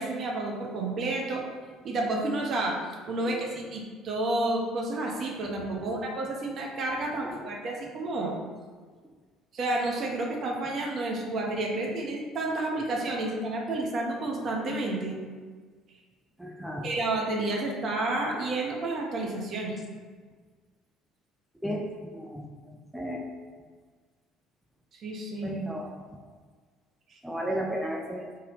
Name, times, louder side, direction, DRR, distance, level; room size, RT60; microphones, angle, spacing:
voice 1, 0.0-1.4 1.8-2.8 3.1-8.3 9.5-15.2 16.8-19.8 24.9-25.5 27.1-27.2, right 2 dB, 45° right, -1 dB, 0.6 m, -30 dB
voice 2, 16.4-16.8 21.6-21.8 22.1-22.4 22.9-23.2 25.4-25.9 27.2-28.3, right 1 dB, 5° right, 0 dB, 0.4 m, -33 dB
3.3 x 2.2 x 3.4 m, 1.5 s
figure-of-eight pair, 55°, 0 cm